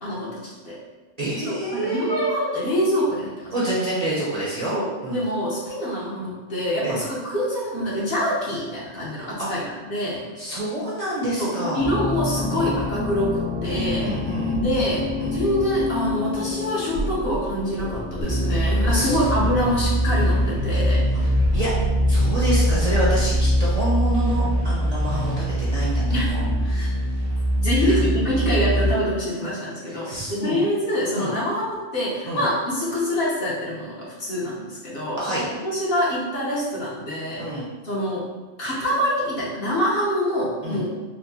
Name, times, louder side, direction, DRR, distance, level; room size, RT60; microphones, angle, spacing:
voice 1, 0.0-0.8 1.4-3.5 4.7-10.2 11.4-13.3 13.6-14.1 14.5-15.0 15.3-21.0 26.1-26.3 27.6-35.2 35.6-37.5 37.8-38.2 38.6-40.9, equal, 50° left, -7 dB, 1.1 m, -25 dB
voice 2, 1.2-2.3 3.5-5.2 6.8-7.0 9.4-9.5 10.4-11.8 12.5-12.7 14.0-14.6 15.2-15.4 18.7-19.2 21.5-21.7 22.1-26.4 26.7-26.9 27.8-28.0 29.9-30.6 31.1-31.3 32.2-32.5 35.2-35.4 37.4-37.7 40.6-40.9, right 1 dB, 40° right, -7 dB, 0.7 m, -28 dB
sound 1, 11.8-26.8, left 3 dB, 65° right, 1.2 m, -29 dB
sound 2, 18.2-28.9, right 1 dB, 25° left, 0.8 m, -22 dB
4.5 x 2.1 x 2.8 m, 1.2 s
omnidirectional pair, 1.2 m